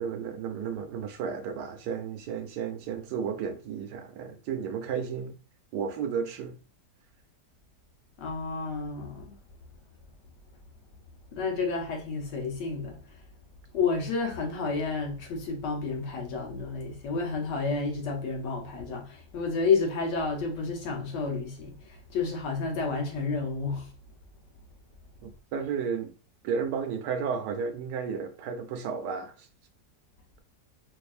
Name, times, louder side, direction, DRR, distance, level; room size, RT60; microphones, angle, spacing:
voice 1, 0.0-5.4 5.7-6.6 25.2-26.1 26.4-29.5, right 6 dB, 80° right, 1.2 m, -33 dB
voice 2, 8.2-9.4 11.3-13.0 13.7-21.8 22.1-23.9, left 4 dB, 80° left, 1.5 m, -30 dB
4.7 x 2.6 x 2.5 m
omnidirectional pair, 1.8 m